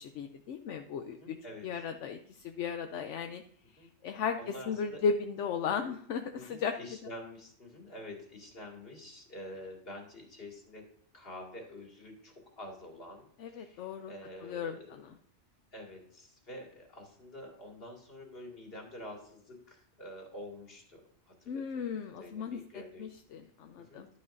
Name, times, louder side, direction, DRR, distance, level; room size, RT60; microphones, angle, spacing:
voice 1, 0.0-1.4 1.6-3.4 4.0-6.7 13.4-14.1 14.4-15.1 21.5-24.1, left 6 dB, 80° left, 6 dB, 0.9 m, -36 dB
voice 2, 1.1-1.7 3.8-3.9 4.4-5.0 6.3-10.9 11.1-15.0 15.7-21.6 22.2-23.1 23.8-24.1, left 1 dB, 55° left, 0 dB, 2.3 m, -47 dB
11.5 x 8.5 x 2.6 m, 0.62 s
omnidirectional pair, 1.2 m